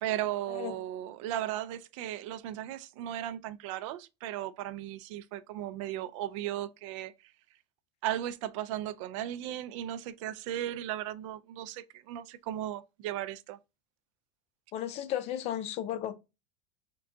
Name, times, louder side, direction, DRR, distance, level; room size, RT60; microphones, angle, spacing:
voice 1, 0.0-7.1 8.0-13.6, right 12 dB, 80° right, 0.4 m, -36 dB
voice 2, 14.7-16.1, left 11 dB, 40° left, 0.5 m, -34 dB
3.7 x 2.3 x 3.6 m
cardioid pair, 155°, 16 cm